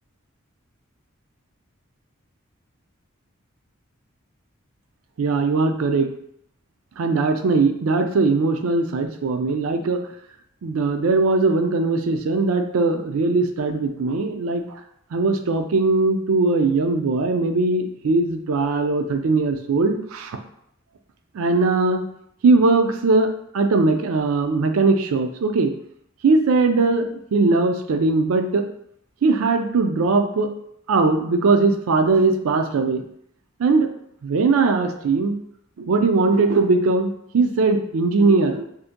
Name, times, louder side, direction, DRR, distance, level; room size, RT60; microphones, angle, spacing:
voice 1, 5.2-6.1 7.0-10.0 10.6-14.7 15.1-20.4 21.3-22.0 22.4-25.7 26.2-28.7 29.2-30.5 30.9-33.0 33.6-33.9 34.2-35.4 35.8-38.6, right 3 dB, 85° right, 7 dB, 0.4 m, -20 dB
2.7 x 2.5 x 3.6 m, 0.72 s
head